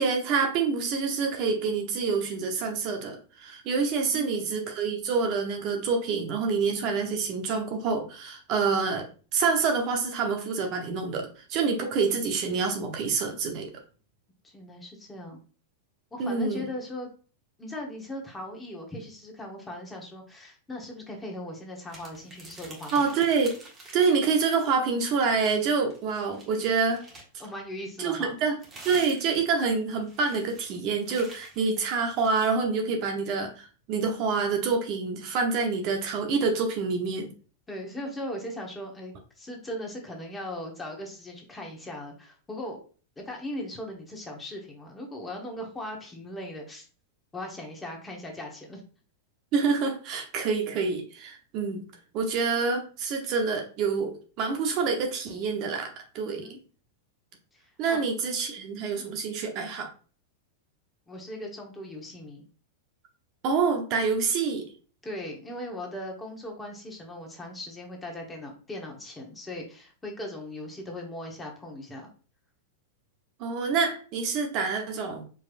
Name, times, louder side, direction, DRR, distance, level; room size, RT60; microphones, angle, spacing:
voice 1, 0.0-9.1 9.3-13.7 16.2-16.6 22.9-23.5 23.9-27.0 28.0-28.5 28.8-37.3 49.5-51.8 52.1-56.5 57.8-59.9 63.4-64.7 73.4-75.2, right 5 dB, 45° right, 3 dB, 0.9 m, -27 dB
voice 2, 4.1-4.6 14.4-15.4 16.1-17.1 17.6-23.1 27.4-28.3 32.9-33.2 37.7-42.8 43.2-46.9 47.3-48.8 56.3-56.6 57.5-58.1 58.9-59.0 61.1-62.4 65.0-72.1, left 1 dB, 15° left, 1 dB, 1.3 m, -39 dB
sound 1, 21.9-24.8 25.1-27.4 28.2-32.5, right 2 dB, 25° right, 1.5 m, -48 dB
4.8 x 3.1 x 2.5 m, 0.38 s
hypercardioid pair, 105°, 0 cm